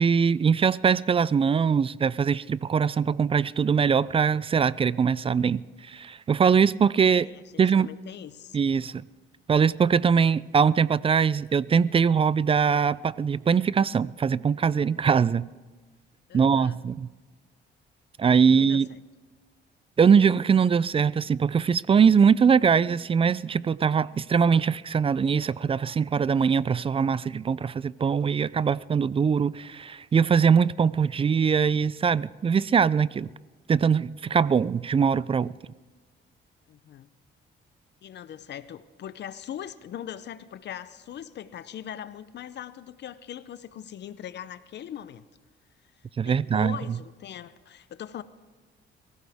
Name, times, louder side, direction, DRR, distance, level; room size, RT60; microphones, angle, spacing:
voice 1, 0.0-5.6 5.9-7.3 7.6-7.9 8.5-9.0 9.5-15.5 16.3-17.1 18.2-18.9 20.0-33.3 33.7-35.5 46.2-46.8, right 6 dB, 30° right, 0.4 m, -22 dB
voice 2, 7.2-8.6 16.3-16.8 18.5-19.0 36.7-37.1 38.0-45.3 46.0-48.2, left 10 dB, 60° left, 0.6 m, -41 dB
22.5 x 15.5 x 3.5 m
cardioid pair, 90°, 20 cm